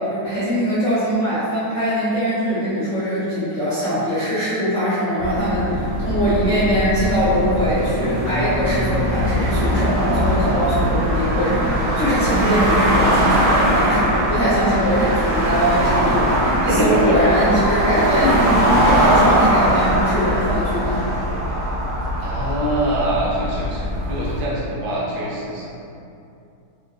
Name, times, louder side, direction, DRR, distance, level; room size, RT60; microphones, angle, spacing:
voice 1, 0.0-21.1, equal, 80° left, -11 dB, 0.6 m, -21 dB
sound 1, 5.2-24.4, right 1 dB, 85° right, 1.5 m, -20 dB
voice 2, 16.7-17.5 22.2-25.7, right 1 dB, 65° right, -5 dB, 1.1 m, -23 dB
3.3 x 2.9 x 2.5 m, 2.6 s
omnidirectional pair, 2.3 m